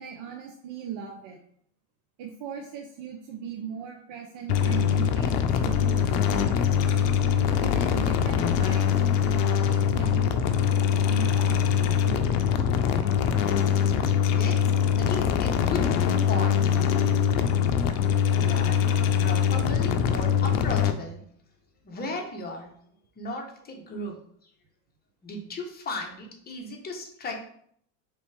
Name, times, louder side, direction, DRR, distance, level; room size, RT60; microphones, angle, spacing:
voice 1, 0.0-1.4 2.2-6.8 7.6-10.7 11.0-11.8 12.1-12.3, right 7 dB, 60° right, 1 dB, 0.7 m, -39 dB
sound 1, 4.5-20.9, left 8 dB, 65° left, 0.6 m, -23 dB
voice 2, 14.3-15.8 16.2-16.6 18.3-18.8 19.2-21.2 21.8-22.7 23.2-24.1 24.4-24.5 25.2-27.5, left 2 dB, 25° left, 1 dB, 1.0 m, -36 dB
4.2 x 3.4 x 3.3 m, 0.65 s
supercardioid pair, 115°, 37 cm